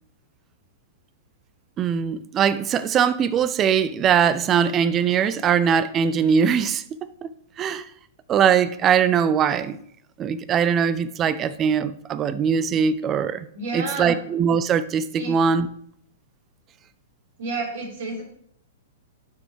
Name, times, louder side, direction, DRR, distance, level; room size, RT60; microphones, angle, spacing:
voice 1, 1.8-6.8 7.2-7.3 7.6-7.9 8.3-9.8 10.2-13.5 13.7-15.7, right 7 dB, 25° right, 0.5 m, -21 dB
voice 2, 13.5-14.2 15.1-15.4 17.4-18.2, right 3 dB, 65° right, 3.8 m, -30 dB
11.5 x 6.1 x 3.3 m
hypercardioid pair, 120°, 0 cm